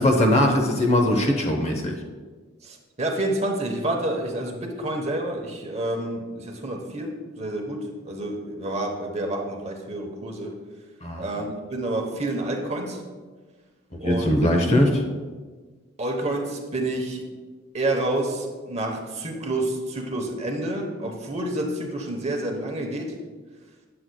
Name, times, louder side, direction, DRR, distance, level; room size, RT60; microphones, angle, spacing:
voice 1, 0.0-2.0 11.0-11.2 13.9-15.0, left 1 dB, 30° left, 3 dB, 0.8 m, -20 dB
voice 2, 2.6-10.5 11.2-13.0 14.0-14.4 16.0-17.3 17.7-23.2, right 1 dB, 30° right, 2 dB, 0.9 m, -29 dB
9.7 x 7.6 x 2.3 m, 1.4 s
head